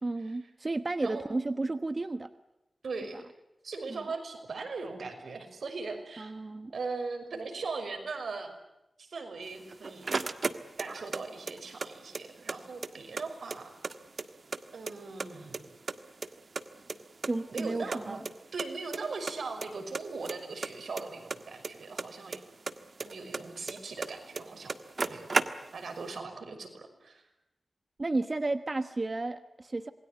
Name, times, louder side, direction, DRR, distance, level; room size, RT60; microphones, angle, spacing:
voice 1, 0.0-2.3 3.9-4.0 6.2-6.7 17.3-18.2 28.0-29.9, right 2 dB, 40° right, 10 dB, 1.2 m, -32 dB
voice 2, 2.8-3.2 3.6-6.3 6.7-8.5 9.0-10.2 10.8-13.7 14.7-15.8 17.5-18.2 18.5-22.4 23.0-24.8 25.1-25.4 25.7-27.2, right 4 dB, 90° right, 6 dB, 5.7 m, -39 dB
sound 1, 9.5-11.2 11.5-12.6 12.8-12.9 13.2-14.6 14.9-15.6 15.9-17.3 17.6-17.7 17.9-18.0 18.3-18.4 18.6-19.0 19.3-19.7 19.9-22.4 22.7-24.1 24.4-24.5 24.7-25.9, right 4 dB, 60° right, 1.5 m, -33 dB
27.5 x 21.5 x 9.3 m, 0.90 s
wide cardioid pair, 85°, 0 cm